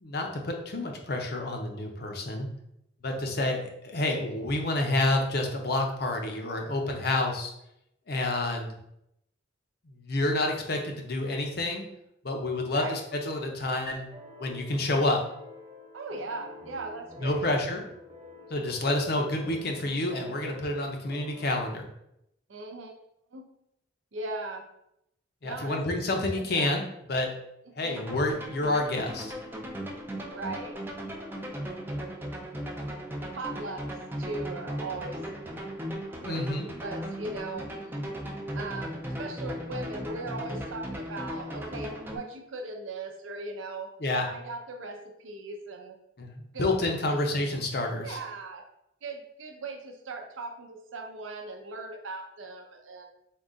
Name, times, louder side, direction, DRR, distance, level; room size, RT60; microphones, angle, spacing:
voice 1, 0.0-2.5 3.0-7.5 8.1-8.7 9.9-11.9 12.2-13.0 13.3-14.1 14.4-15.2 17.2-17.8 18.5-21.9 25.4-27.3 27.8-29.3 36.2-36.7 44.0-44.3 46.2-48.2, left 2 dB, 50° left, 2 dB, 0.6 m, -29 dB
sound 1, 14.1-21.6, left 2 dB, 30° right, 1.1 m, -48 dB
voice 2, 15.9-17.5 22.5-22.9 23.3-23.4 24.1-24.6 25.4-25.8 26.1-26.7 27.8-28.0 30.3-30.8 31.3-31.6 33.3-33.9 34.2-35.2 36.0-37.7 38.5-43.9 44.2-46.0 46.5-47.3 48.0-48.6 49.0-53.1, right 2 dB, 80° right, 3 dB, 0.6 m, -39 dB
sound 2, 28.0-42.2, equal, 10° right, 0.4 m, -37 dB
3.7 x 2.3 x 3.7 m, 0.79 s
head